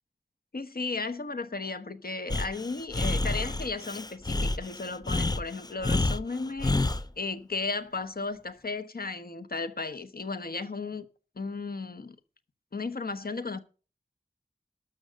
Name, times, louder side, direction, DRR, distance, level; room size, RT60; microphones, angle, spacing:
voice 1, 0.5-6.8 7.2-11.1 11.4-12.2 12.7-13.6, left 3 dB, 70° left, 1.1 m, -35 dB
Breathing, 2.3-7.0, left 2 dB, 25° left, 0.5 m, -28 dB
12.5 x 6.3 x 6.4 m
wide cardioid pair, 60°, 16 cm